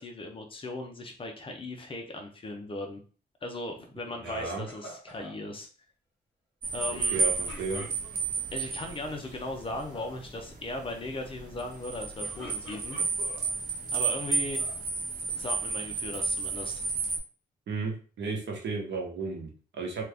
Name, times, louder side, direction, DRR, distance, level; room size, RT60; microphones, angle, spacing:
voice 1, 0.0-3.0 3.4-5.7 6.7-7.2 8.5-13.0 13.9-14.7 15.3-17.1, left 2 dB, 30° left, 3 dB, 0.6 m, -38 dB
sound 1, 4.2-5.4 7.1-8.4 9.1-9.5 9.7-10.2 12.0-13.5 14.1-14.8, right 1 dB, 5° right, 1.6 m, -46 dB
voice 2, 4.2-4.6 6.9-7.8 17.7-20.0, right 4 dB, 85° right, 0 dB, 1.0 m, -34 dB
sound 2, 6.6-17.2, right 4 dB, 50° right, 0.9 m, -32 dB
2.8 x 2.5 x 3.4 m, 0.38 s
wide cardioid pair, 160°, 18 cm